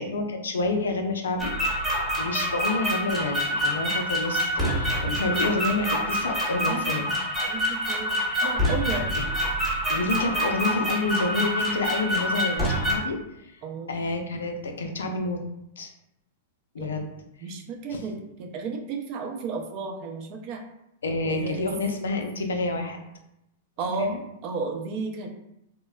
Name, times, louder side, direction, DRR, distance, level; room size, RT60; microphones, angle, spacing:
voice 1, 0.0-1.5 2.0-7.1 9.2-9.3 9.9-13.6 13.9-15.4 15.8-15.9 16.7-17.1 17.9-18.0 21.0-23.0 24.0-24.2, left 2 dB, 85° left, 4 dB, 0.4 m, -29 dB
sound 1, 1.4-12.9, equal, 10° right, 1.0 m, -26 dB
voice 2, 6.6-7.2 7.5-9.2 13.6-14.0 16.8-17.0 17.4-20.6 21.3-21.7 23.8-24.1 24.4-25.3, right 4 dB, 45° right, 2 dB, 0.5 m, -33 dB
3.0 x 2.1 x 2.2 m, 0.82 s
hypercardioid pair, 115°, 0 cm